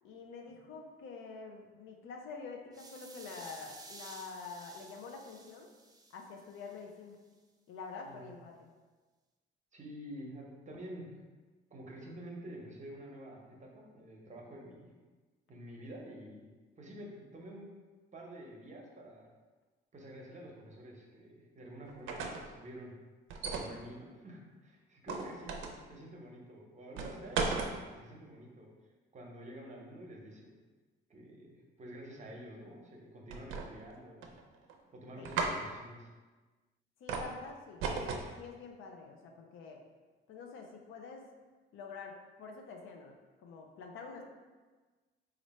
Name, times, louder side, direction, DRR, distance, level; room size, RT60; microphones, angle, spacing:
voice 1, 0.0-5.7 6.1-7.2 7.7-8.7 23.7-23.8 25.1-25.3 35.2-35.3 37.0-39.8 40.3-41.3 41.7-43.1 43.4-44.2, left 4 dB, 80° left, 2 dB, 0.6 m, -47 dB
sound 1, 2.7-6.8, right 3 dB, 20° right, 0.4 m, -53 dB
voice 2, 8.1-8.4 9.7-11.1 11.7-14.9 15.5-16.5 16.8-17.7 18.1-19.3 19.9-22.9 23.4-25.6 25.9-28.7 29.1-30.5 31.1-34.4 34.9-36.1, right 1 dB, 35° right, -1 dB, 0.9 m, -49 dB
sound 2, 21.9-22.5 23.3-23.7 25.1-25.8 27.0-27.7 33.3-33.9 34.2-34.7 35.2-35.6 37.1-37.3 37.8-38.3, right 4 dB, 80° right, 0.5 m, -35 dB
3.2 x 2.5 x 4.1 m, 1.3 s
cardioid pair, 90°, 20 cm